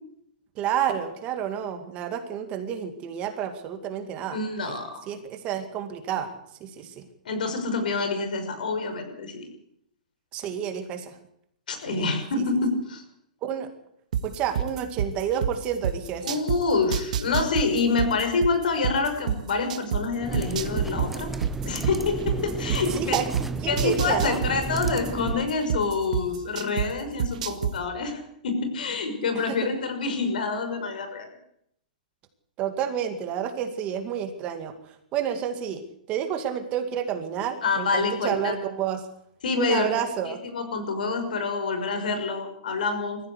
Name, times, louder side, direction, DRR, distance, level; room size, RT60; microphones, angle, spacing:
voice 1, 0.6-4.4 4.6-6.3 6.6-7.1 10.3-11.2 11.9-12.4 13.4-13.7 14.2-16.3 22.6-24.4 29.3-29.7 32.6-34.7 35.1-39.0 39.6-40.4, right 9 dB, 25° right, 6 dB, 2.2 m, -30 dB
voice 2, 4.3-5.1 7.2-9.5 11.7-13.0 16.2-21.3 21.6-23.2 23.7-31.3 37.6-38.5 39.4-39.9 40.3-43.2, left 4 dB, 75° left, 7 dB, 6.0 m, -27 dB
sound 1, 14.1-16.6 16.9-20.0 20.3-23.4 23.8-26.9 27.2-27.7, right 9 dB, 60° right, 1.8 m, -26 dB
sound 2, 20.2-25.5, right 4 dB, 5° right, 0.8 m, -33 dB
21.5 x 15.0 x 8.2 m, 0.73 s
hypercardioid pair, 160°, 5 cm